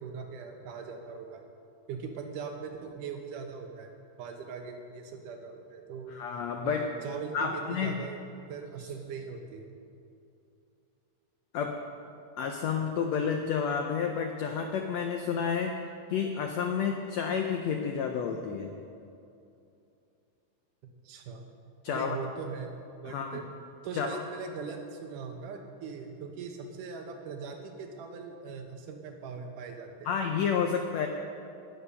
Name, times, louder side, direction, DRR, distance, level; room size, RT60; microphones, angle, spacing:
voice 1, 0.0-1.4 1.9-6.1 6.6-8.2 8.5-9.7 21.1-21.4 21.9-23.4 23.8-30.1, right 5 dB, 75° right, 4 dB, 2.6 m, -40 dB
voice 2, 6.1-6.9 7.3-8.0 11.5-11.8 12.4-15.8 16.1-18.7 21.8-22.2 23.0-23.4 23.9-24.2 30.0-31.1, left 6 dB, 90° left, 4 dB, 1.5 m, -30 dB
18.5 x 6.9 x 5.7 m, 2.6 s
omnidirectional pair, 3.9 m